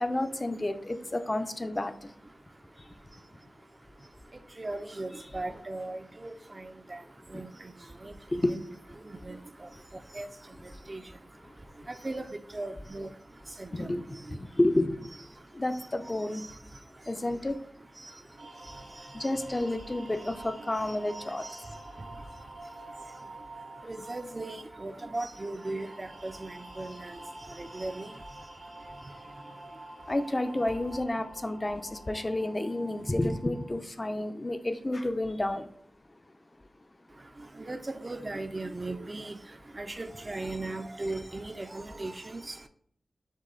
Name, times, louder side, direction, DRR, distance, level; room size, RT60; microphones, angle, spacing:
voice 1, 0.0-2.1 7.3-7.4 8.3-8.6 13.7-15.1 15.5-16.4 17.1-17.6 19.1-21.6 30.1-35.7, left 1 dB, 30° left, 0.5 m, -30 dB
voice 2, 4.6-6.7 7.3-7.5 8.0-8.1 8.5-8.6 9.3-9.4 10.1-10.3 10.9-11.0 12.0-12.3 12.5-13.1 13.6-13.9 23.8-27.2 27.6-28.1 37.7-39.4 39.8-42.5, right 2 dB, 35° right, 0.4 m, -37 dB
sound 1, 18.4-33.7, right 2 dB, 75° right, 1.4 m, -47 dB
6.3 x 2.2 x 3.8 m
cardioid pair, 55°, 0 cm